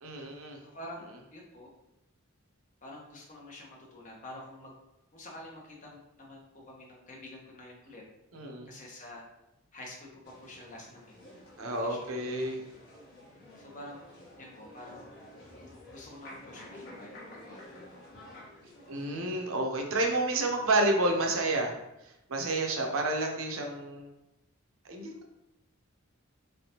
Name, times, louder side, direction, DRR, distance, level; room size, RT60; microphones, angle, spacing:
voice 1, 0.0-0.6 8.3-8.7 11.6-12.6 18.9-21.8 22.3-24.1 24.8-25.3, right 2 dB, 75° right, 3 dB, 0.6 m, -30 dB
voice 2, 0.6-1.7 2.8-4.7 5.1-8.0 8.7-9.2 9.7-11.1 11.7-12.7 13.6-14.0 14.4-15.1 15.9-17.8, left 1 dB, 35° left, -2 dB, 0.9 m, -48 dB
sound 1, 10.2-19.5, left 1 dB, 55° left, 1.2 m, -51 dB
3.8 x 3.4 x 2.8 m, 0.89 s
head